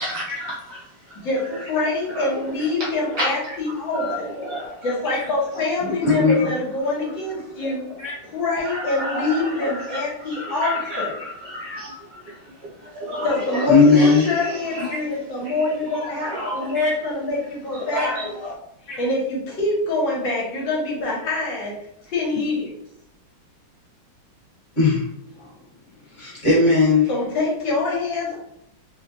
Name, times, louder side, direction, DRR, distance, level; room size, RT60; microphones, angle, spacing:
voice 1, 0.0-3.6 3.9-4.9 5.5-5.6 6.4-6.5 7.0-7.1 7.6-8.0 8.6-15.0 15.4-15.7 16.0-16.8 17.7-18.6, equal, 70° right, -4 dB, 1.0 m, -31 dB
voice 2, 1.2-4.3 4.8-7.8 8.3-11.1 13.2-18.3 19.0-21.7 22.1-22.7 27.1-28.4, left 2 dB, 70° left, -3 dB, 1.5 m, -25 dB
voice 3, 5.8-6.4 8.0-8.1 13.7-14.2 14.9-15.0 16.7-16.9 17.9-18.1 18.9-19.0 24.8-25.0 25.4-25.5 26.1-27.1, left 4 dB, 40° left, -5 dB, 1.5 m, -17 dB
4.5 x 2.1 x 2.6 m, 0.75 s
omnidirectional pair, 2.3 m